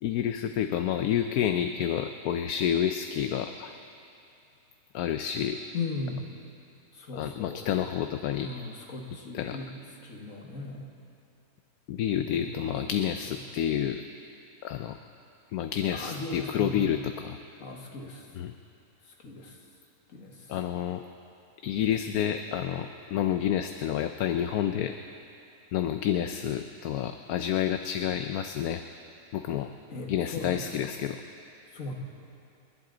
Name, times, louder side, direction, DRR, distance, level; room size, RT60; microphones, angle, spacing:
voice 1, 0.0-3.7 4.9-5.6 7.1-8.5 9.3-9.6 11.9-14.0 14.6-15.0 15.5-17.4 18.3-18.5 20.5-21.0 21.6-25.0 25.7-28.8 29.3-29.7 30.1-31.2, left 10 dB, 80° left, 8 dB, 1.1 m, -29 dB
voice 2, 5.7-6.2 6.9-7.7 8.4-9.7 10.0-10.9 12.3-12.9 15.9-17.1 17.6-18.3 19.2-19.6 20.1-20.5 29.9-30.7 31.7-31.9, left 3 dB, 60° left, 1 dB, 1.9 m, -37 dB
29.0 x 11.0 x 3.9 m, 2.6 s
omnidirectional pair, 1.6 m